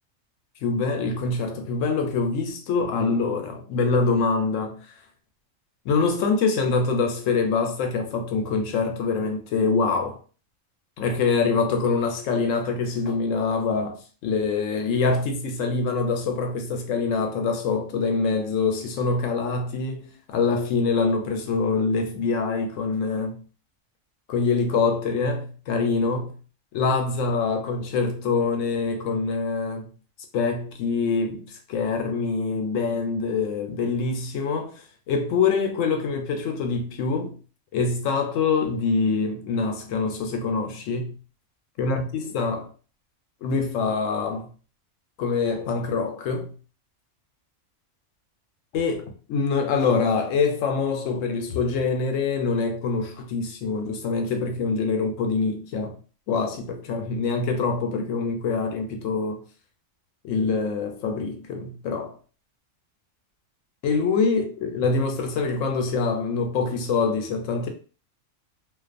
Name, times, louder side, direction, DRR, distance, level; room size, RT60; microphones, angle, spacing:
voice 1, 0.6-4.9 5.8-10.2 11.0-23.4 24.3-26.4 26.7-29.9 30.3-37.4 37.7-41.2 41.8-42.7 43.4-44.5 45.2-46.5 48.7-56.0 56.3-59.4 60.2-62.2 63.8-67.7, left 4 dB, 80° left, 1.0 m, -25 dB
2.5 x 2.2 x 2.5 m
omnidirectional pair, 1.3 m